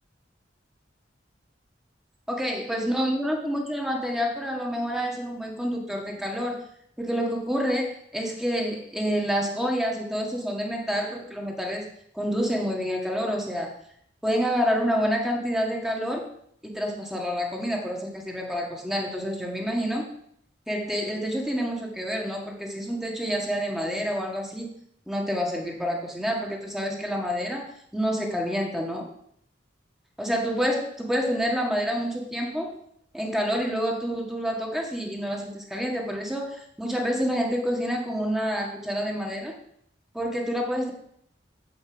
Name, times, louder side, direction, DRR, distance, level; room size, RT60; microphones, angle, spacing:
voice 1, 2.3-6.6 7.0-11.9 12.1-13.8 14.2-16.3 16.6-20.1 20.7-24.7 25.1-29.1 30.2-32.8 33.1-39.6 40.1-40.9, equal, 5° right, 0 dB, 1.6 m, -28 dB
9.3 x 5.0 x 7.8 m, 0.69 s
head